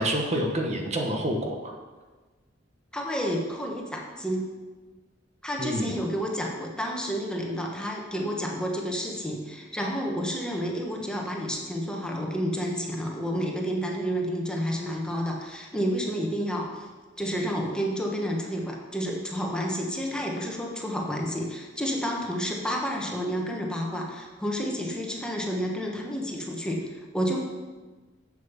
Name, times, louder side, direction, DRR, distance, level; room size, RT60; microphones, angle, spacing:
voice 1, 0.0-1.7 5.6-6.0, right 1 dB, 35° right, 1 dB, 1.2 m, -28 dB
voice 2, 2.9-4.4 5.4-16.9 17.2-27.4, equal, 5° left, -1 dB, 1.3 m, -30 dB
7.5 x 7.4 x 7.0 m, 1.3 s
head